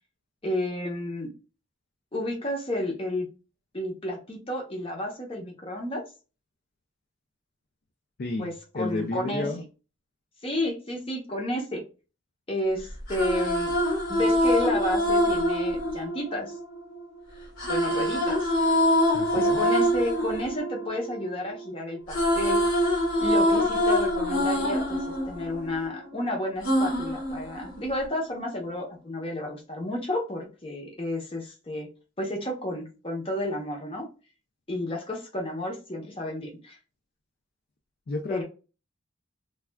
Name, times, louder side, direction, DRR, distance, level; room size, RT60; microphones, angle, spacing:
voice 1, 0.4-1.3 2.1-3.3 3.7-6.0 8.4-9.5 10.4-11.8 12.5-13.7 14.1-16.6 17.7-18.5 19.3-22.6 23.2-31.9 32.2-34.1 34.7-36.8 38.3-38.4, left 1 dB, 25° left, 0 dB, 0.8 m, -31 dB
voice 2, 8.2-9.6 19.1-19.6 38.1-38.4, left 2 dB, 50° left, 4 dB, 0.4 m, -32 dB
sound 1, 12.9-17.0 17.6-21.6 21.9-26.1 26.6-28.1, equal, 70° left, 1.4 m, -25 dB
3.2 x 2.3 x 2.2 m, 0.33 s
head